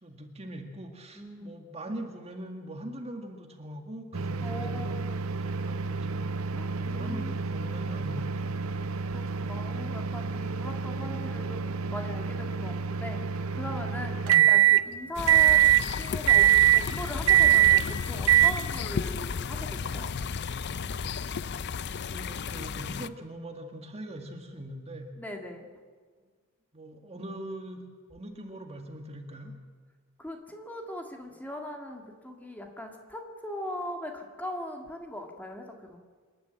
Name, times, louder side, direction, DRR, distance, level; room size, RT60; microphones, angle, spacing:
voice 1, 0.0-5.0 5.3-6.3 6.7-8.6 14.3-14.5 22.0-25.1 26.7-29.5, right 1 dB, 30° right, 4 dB, 1.9 m, -42 dB
voice 2, 1.1-1.5 4.4-5.2 6.5-7.4 8.8-13.2 13.5-15.6 16.0-20.2 25.2-25.7 30.2-36.0, left 1 dB, 10° left, 2 dB, 1.9 m, -40 dB
sound 1, 4.1-14.8 15.3-15.8 16.3-16.8 17.3-17.8 18.3-18.5, right 11 dB, 75° right, 0.7 m, -24 dB
sound 2, 15.1-23.1, left 5 dB, 55° left, 0.5 m, -33 dB
26.5 x 11.0 x 8.9 m, 1.5 s
head